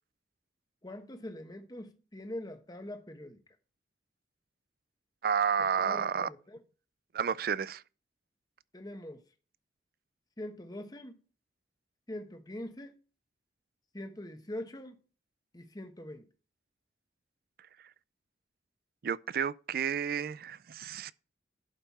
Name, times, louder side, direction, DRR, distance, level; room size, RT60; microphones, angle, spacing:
voice 1, 0.8-3.4 5.8-6.6 8.7-9.2 10.4-11.2 12.1-13.0 13.9-15.0 15.5-16.3, left 1 dB, 20° left, 1.1 m, -43 dB
voice 2, 5.2-6.3 7.1-7.8 19.0-21.1, right 7 dB, 55° right, 0.4 m, -31 dB
11.5 x 5.5 x 4.2 m
head